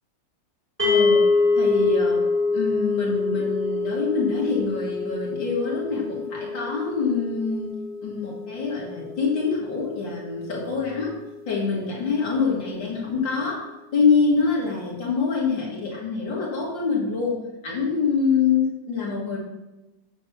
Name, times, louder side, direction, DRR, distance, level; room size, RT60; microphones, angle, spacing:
voice 1, 0.8-1.3 1.6-2.2 2.5-7.7 8.0-11.1 11.5-13.6 13.9-17.3 17.6-19.4, left 5 dB, 75° left, -3 dB, 2.5 m, -25 dB
sound 1, 0.8-11.1, left 3 dB, 5° right, 1.7 m, -26 dB
7.4 x 6.3 x 5.9 m, 1.0 s
omnidirectional pair, 2.0 m